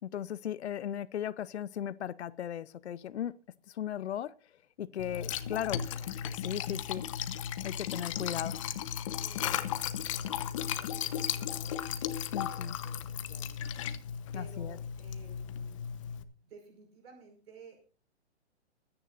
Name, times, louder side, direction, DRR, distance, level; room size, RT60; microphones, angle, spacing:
voice 1, 0.0-3.3 3.7-4.3 4.8-5.8 6.3-7.0 7.6-8.6 12.3-12.8 14.3-14.8, left 10 dB, 70° left, 0.8 m, -37 dB
voice 2, 4.9-6.1 8.1-8.4 9.0-9.7 10.2-13.6 14.3-15.8 16.4-17.8, right 4 dB, 55° right, 5.3 m, -56 dB
Liquid, 5.0-16.2, left 9 dB, 30° left, 0.9 m, -35 dB
24.0 x 10.0 x 2.6 m
hypercardioid pair, 165°, 34 cm